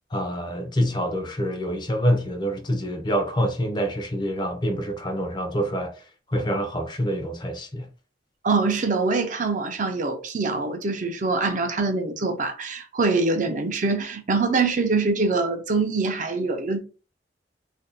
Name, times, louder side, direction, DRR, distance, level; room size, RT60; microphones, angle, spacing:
voice 1, 0.1-7.9, equal, 25° left, 0.6 m, -26 dB
voice 2, 8.4-16.8, right 3 dB, 45° right, 0.5 m, -24 dB
2.5 x 2.2 x 3.9 m
head